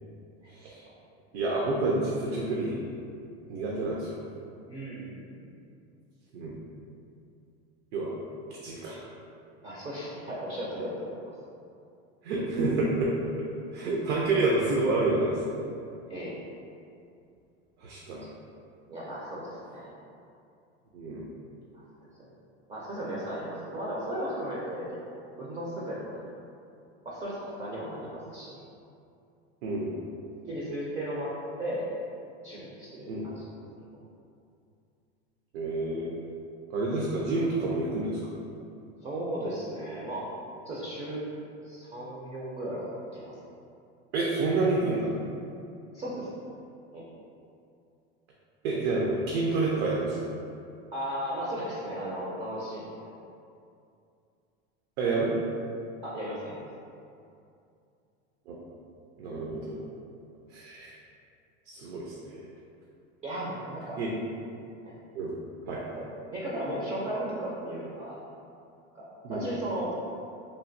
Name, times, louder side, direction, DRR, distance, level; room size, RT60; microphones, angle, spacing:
voice 1, 0.5-0.8 1.3-2.8 3.5-4.2 6.3-6.6 7.9-8.1 8.6-9.1 12.2-13.1 13.7-15.4 17.8-18.3 20.9-21.3 29.6-29.9 33.1-33.3 35.5-36.1 36.7-38.2 44.1-45.2 48.6-50.2 55.0-55.3 58.5-58.6 59.2-59.8 60.5-60.9 61.7-62.4 64.0-64.1 65.1-65.3 65.7-65.8 69.2-69.4, right 2 dB, 75° right, -4 dB, 0.6 m, -28 dB
voice 2, 4.7-5.5 9.6-11.3 16.1-16.4 18.2-18.3 18.9-19.9 22.2-22.3 22.7-26.2 27.0-28.6 30.5-31.3 31.6-31.9 32.4-33.4 33.9-34.0 39.0-40.3 40.7-41.3 41.6-43.4 45.9-46.6 46.9-47.1 50.9-53.2 56.0-56.6 63.2-64.0 64.8-65.0 66.0-68.2 68.9-69.9, right 1 dB, 20° right, -6 dB, 0.4 m, -36 dB
3.2 x 2.5 x 2.5 m, 2.5 s
supercardioid pair, 125°, 33 cm